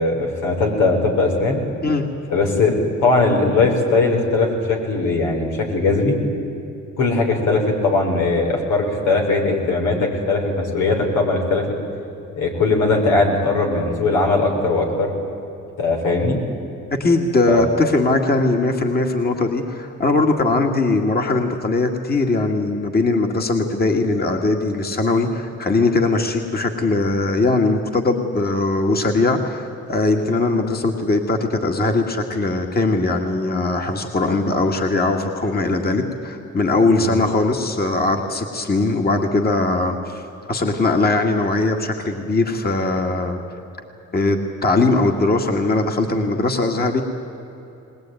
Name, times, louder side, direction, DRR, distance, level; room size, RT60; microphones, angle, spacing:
voice 1, 0.0-1.6 2.3-6.2 7.0-11.7 12.3-15.1 15.8-16.4 17.5-17.6 36.8-37.1, left 3 dB, 90° left, 1 dB, 4.5 m, -19 dB
voice 2, 17.0-43.4 44.1-47.0, left 2 dB, 30° left, 3 dB, 2.0 m, -20 dB
21.0 x 20.0 x 9.1 m, 2.9 s
cardioid pair, 90°, 30 cm